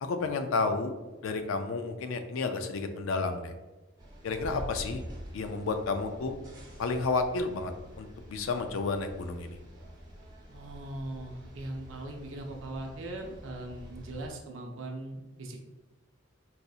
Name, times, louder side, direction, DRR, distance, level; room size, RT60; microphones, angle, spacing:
voice 1, 0.0-0.9 1.2-3.5 4.2-5.0 5.3-6.4 6.8-7.7 8.0-9.6, left 3 dB, 80° left, 7 dB, 0.4 m, -31 dB
sound 1, 4.0-14.3, equal, 20° right, 0.7 m, -47 dB
voice 2, 10.5-15.6, right 1 dB, 75° right, 2 dB, 0.6 m, -40 dB
4.0 x 2.7 x 2.4 m, 1.2 s
head